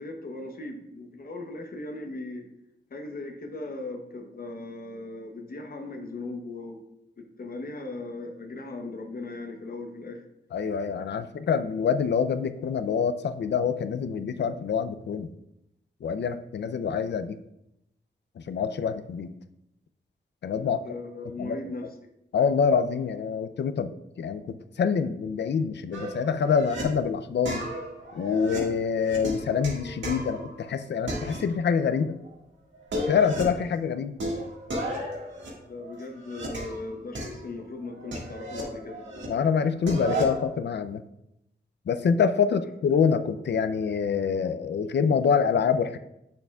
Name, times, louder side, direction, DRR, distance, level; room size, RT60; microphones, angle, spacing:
voice 1, 0.0-2.5 2.9-6.8 7.2-10.2 20.7-21.9 35.7-39.1 42.5-42.6, left 2 dB, 50° left, 3 dB, 0.9 m, -38 dB
voice 2, 10.5-15.3 16.0-17.4 18.4-19.3 20.4-20.8 21.4-21.6 22.3-23.9 24.2-27.6 28.1-32.1 33.1-34.1 39.3-41.0 41.9-46.0, left 6 dB, 65° left, 11 dB, 0.4 m, -26 dB
sound 1, 25.9-26.8 27.5-30.7 31.1-32.0 32.2-32.3 32.7-33.7 34.2-36.8 37.2-39.3 39.6-40.4, right 1 dB, 80° right, 1.7 m, -34 dB
7.9 x 6.8 x 2.3 m, 0.83 s
wide cardioid pair, 145°, 19 cm